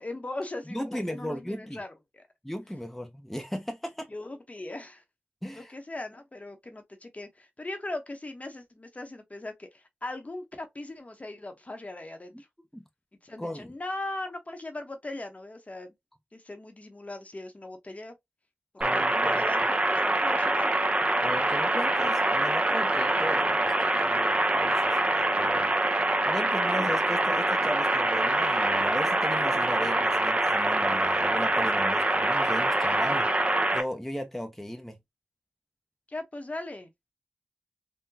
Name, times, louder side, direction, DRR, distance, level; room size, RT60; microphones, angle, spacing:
voice 1, 0.0-2.2 4.1-5.0 5.6-12.5 13.2-15.9 16.3-18.1 18.9-20.9 36.1-37.1, left 2 dB, 35° left, 0.9 m, -39 dB
voice 2, 0.7-1.8 2.4-4.1 5.4-5.7 12.7-12.8 13.4-13.7 18.8-19.3 21.2-25.7 26.2-33.3 33.7-35.0, equal, 5° left, 0.7 m, -36 dB
sound 1, 18.8-33.8, right 2 dB, 30° right, 0.7 m, -25 dB
3.8 x 2.2 x 2.7 m
cardioid pair, 45°, 4 cm